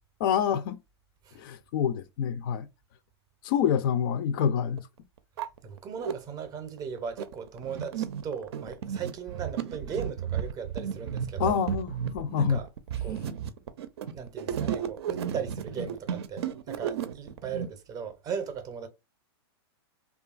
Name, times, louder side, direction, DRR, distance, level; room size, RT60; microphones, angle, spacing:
voice 1, 0.2-0.8 1.3-2.7 3.4-4.9 11.4-12.6, left 8 dB, 55° left, 0.4 m, -27 dB
sound 1, 4.0-4.1 4.8-4.9 5.2-6.1 6.8-17.6, right 8 dB, 70° right, 0.5 m, -33 dB
voice 2, 5.6-11.6 12.4-12.7 13.0-13.2 14.0-18.9, right 6 dB, 25° right, 0.6 m, -37 dB
2.7 x 2.3 x 2.4 m
hypercardioid pair, 130°, 14 cm